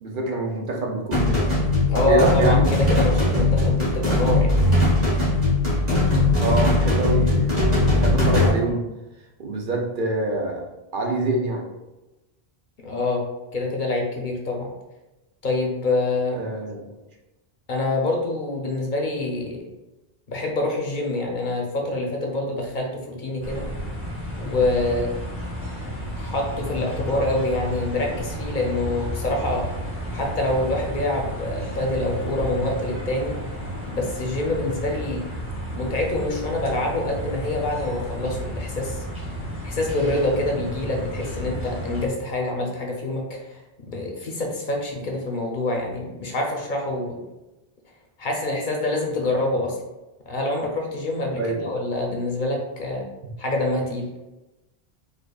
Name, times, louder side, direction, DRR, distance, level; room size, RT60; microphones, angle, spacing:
voice 1, 0.0-1.5 2.0-2.7 6.4-7.6 7.9-8.9 9.4-10.6 10.9-11.7 16.3-16.9 51.4-51.7, right 2 dB, 60° right, 0 dB, 0.7 m, -25 dB
sound 1, 1.1-8.5, left 2 dB, 40° right, 1.5 m, -20 dB
voice 2, 1.9-4.5 12.8-13.3 13.5-14.7 15.4-16.4 17.7-19.6 20.3-23.6 24.4-25.2 26.1-29.7 30.1-33.3 33.9-35.2 35.7-39.0 39.6-47.2 48.2-49.8 50.3-53.1 53.4-54.1, left 2 dB, 55° left, 0 dB, 0.7 m, -26 dB
sound 2, 23.4-42.1, equal, 15° right, 0.9 m, -32 dB
4.7 x 2.4 x 2.3 m, 1.0 s
omnidirectional pair, 1.1 m